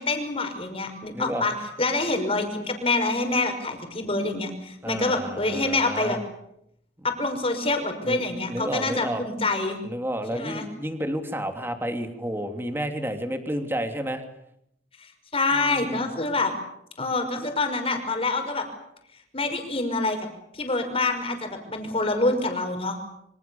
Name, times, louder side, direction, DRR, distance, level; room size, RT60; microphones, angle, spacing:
voice 1, 0.0-6.2 7.0-9.8 10.3-10.7 15.0-16.5 17.0-18.6 19.3-20.2 20.5-23.0, left 2 dB, 30° left, 5 dB, 5.7 m, -26 dB
voice 2, 1.1-1.4 4.8-6.2 8.0-9.2 9.8-14.2 15.5-16.1, equal, 15° right, 6 dB, 3.1 m, -31 dB
27.0 x 25.5 x 7.2 m, 0.77 s
head